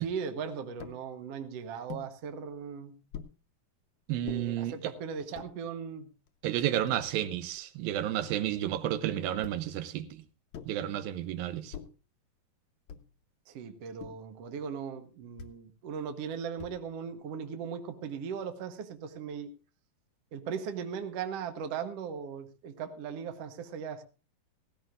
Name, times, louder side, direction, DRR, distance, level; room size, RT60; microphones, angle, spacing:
voice 1, 0.0-3.0 4.2-6.1 13.5-19.5 20.3-24.0, right 6 dB, 65° right, 1.7 m, -38 dB
sound 1, 0.8-1.0 1.9-2.1 3.1-3.4 4.2-4.4 5.2-5.5 6.3-6.4 6.6-7.6 9.4-9.8 10.5-10.8 11.7-12.0 12.9-13.2 14.0-14.3 15.4-15.6 16.6-17.0, left 7 dB, 70° left, 2.1 m, -45 dB
voice 2, 4.1-4.8 6.4-10.2 10.7-11.7, right 12 dB, 90° right, 2.7 m, -31 dB
17.5 x 15.5 x 2.5 m
omnidirectional pair, 4.1 m